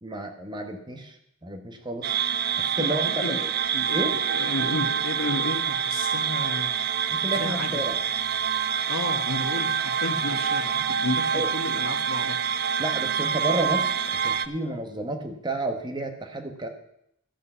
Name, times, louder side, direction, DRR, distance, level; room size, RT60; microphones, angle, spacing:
voice 1, 0.0-1.2 1.4-2.2 2.5-3.5 3.9-4.1 7.1-8.0 11.3-11.5 12.8-16.7, right 1 dB, 20° right, 5 dB, 1.2 m, -31 dB
sound 1, 2.0-14.5, right 7 dB, 50° right, 0.5 m, -26 dB
voice 2, 2.8-3.4 3.7-6.9 7.3-7.8 8.9-12.5, left 2 dB, 70° left, 6 dB, 1.3 m, -32 dB
13.0 x 8.5 x 5.6 m, 0.75 s
head